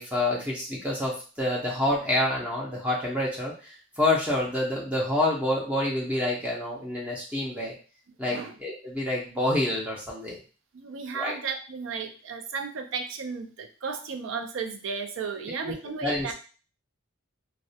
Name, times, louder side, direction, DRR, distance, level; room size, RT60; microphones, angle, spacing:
voice 1, 0.0-7.7 8.2-10.4 11.1-11.4 15.6-15.7 16.0-16.3, left 1 dB, 5° right, -4 dB, 0.5 m, -28 dB
voice 2, 10.7-16.3, right 5 dB, 70° right, 6 dB, 0.4 m, -34 dB
2.3 x 2.1 x 2.7 m, 0.36 s
head